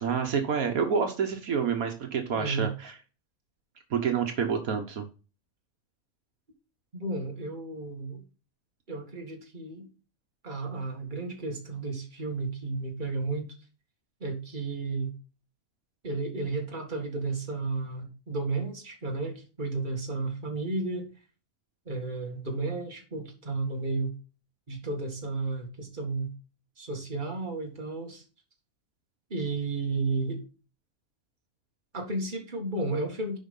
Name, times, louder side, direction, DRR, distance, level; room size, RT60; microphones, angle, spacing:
voice 1, 0.0-3.0 3.9-5.1, right 6 dB, 75° right, 4 dB, 1.5 m, -28 dB
voice 2, 2.3-2.7 6.9-8.2 8.9-9.9 10.4-13.5 14.2-15.1 16.0-21.1 21.9-24.1 24.7-26.3 26.8-28.2 29.3-30.4 31.9-33.4, right 3 dB, 35° right, 1 dB, 2.1 m, -33 dB
7.9 x 5.3 x 5.4 m, 0.34 s
omnidirectional pair, 1.5 m